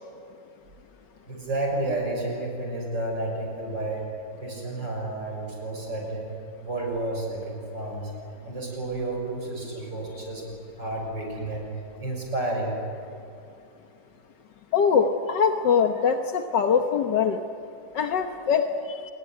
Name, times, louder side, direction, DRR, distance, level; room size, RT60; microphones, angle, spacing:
voice 1, 1.3-4.1 4.4-6.3 6.6-8.1 8.5-11.7 12.0-12.8, right 2 dB, 75° right, 1 dB, 6.9 m, -31 dB
voice 2, 14.7-17.4 17.9-19.0, left 6 dB, 75° left, 5 dB, 1.8 m, -23 dB
27.5 x 21.0 x 9.6 m, 2.6 s
omnidirectional pair, 1.9 m